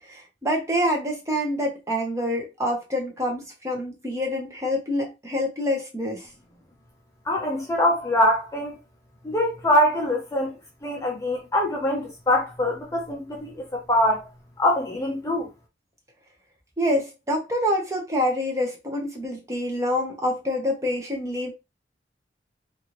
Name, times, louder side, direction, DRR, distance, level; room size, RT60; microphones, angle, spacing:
voice 1, 0.1-6.3 16.8-21.5, equal, 15° right, 0.9 m, -26 dB
voice 2, 7.3-8.8 9.2-10.5 10.8-14.3 14.6-15.5, left 1 dB, 15° left, 0.6 m, -23 dB
3.4 x 2.5 x 2.9 m
head